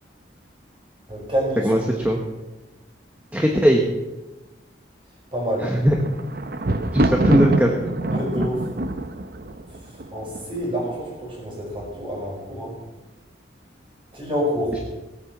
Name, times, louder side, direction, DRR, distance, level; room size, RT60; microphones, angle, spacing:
voice 1, 1.1-1.9 5.3-5.7 8.1-8.7 9.7-12.8 14.1-14.8, equal, 30° right, -2 dB, 4.8 m, -28 dB
voice 2, 3.3-3.8 5.6-6.0 6.9-7.7, equal, 10° right, 0 dB, 1.1 m, -18 dB
Thunder, 5.6-10.8 11.5-12.0 12.3-12.4, right 2 dB, 50° right, 0.8 m, -25 dB
16.5 x 8.8 x 5.9 m, 1.1 s
head